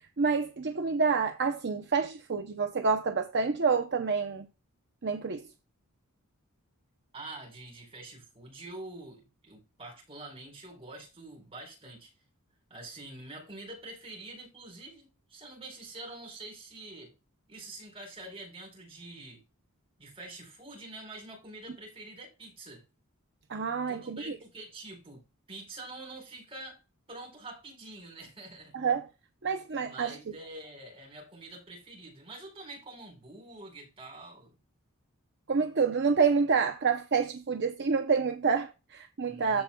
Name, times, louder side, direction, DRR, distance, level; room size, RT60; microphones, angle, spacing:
voice 1, 0.2-4.5 5.0-5.4 23.5-24.4 28.7-29.1 29.4-30.2 35.5-39.6, right 5 dB, 50° right, 0.6 m, -28 dB
voice 2, 7.1-12.1 12.7-17.1 17.5-19.4 20.0-22.8 23.9-25.2 25.5-26.8 27.1-28.7 29.8-34.6 39.2-39.6, right 2 dB, 25° right, 4.6 m, -46 dB
15.0 x 5.2 x 2.2 m
head